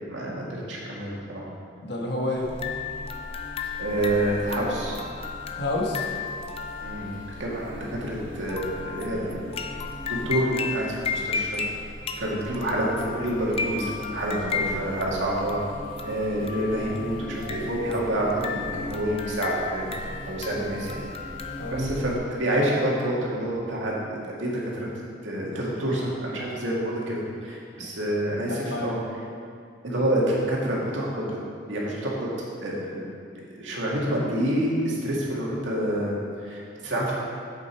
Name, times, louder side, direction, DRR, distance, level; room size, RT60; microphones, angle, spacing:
voice 1, 0.1-1.5 3.8-5.0 6.8-9.5 10.3-11.6 12.2-15.6 16.0-19.9 20.3-21.0 21.7-24.9 25.2-29.0 29.8-31.4 31.7-32.3 32.6-33.1 33.6-37.1, right 1 dB, 85° right, -4 dB, 2.0 m, -28 dB
voice 2, 1.8-2.5 5.6-6.1 20.5-20.7 21.6-21.9 27.8-27.9 28.5-29.0, left 2 dB, 65° left, -1 dB, 1.4 m, -30 dB
Buzz, 2.3-22.1, equal, 35° right, 2.4 m, -41 dB
sound 1, 2.5-21.8, left 5 dB, 30° left, 0.5 m, -35 dB
8.2 x 7.2 x 4.6 m, 2.3 s
head